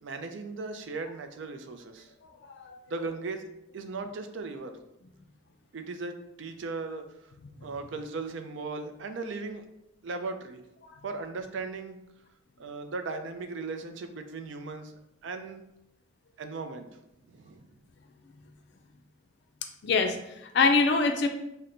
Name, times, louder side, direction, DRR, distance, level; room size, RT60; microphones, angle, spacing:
voice 1, 0.0-2.1 2.9-3.4 3.7-4.8 5.7-7.3 7.6-9.6 10.0-10.6 11.0-12.0 12.6-14.9 15.2-15.6 16.4-16.9 17.2-17.7, right 3 dB, 65° right, 7 dB, 0.4 m, -37 dB
voice 2, 19.8-21.3, left 4 dB, 55° left, 5 dB, 0.4 m, -25 dB
5.8 x 2.1 x 2.5 m, 0.84 s
head